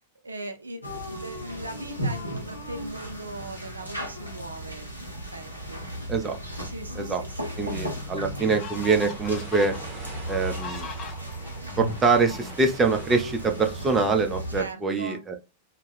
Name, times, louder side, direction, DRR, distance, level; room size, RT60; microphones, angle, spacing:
voice 1, 0.2-5.9 6.6-7.6 14.6-15.2, right 2 dB, 80° right, 0.3 m, -39 dB
sound 1, 0.8-14.6, equal, 90° left, 0.6 m, -35 dB
sound 2, 7.3-7.4 8.0-12.9, left 6 dB, 30° left, 0.6 m, -42 dB
sound 3, 7.3-14.1, right 3 dB, 35° right, 1.0 m, -46 dB
voice 2, 7.6-9.7 10.3-10.9 11.8-15.4, right 4 dB, 20° right, 0.5 m, -24 dB
2.2 x 2.0 x 3.1 m
figure-of-eight pair, 90°, 0 cm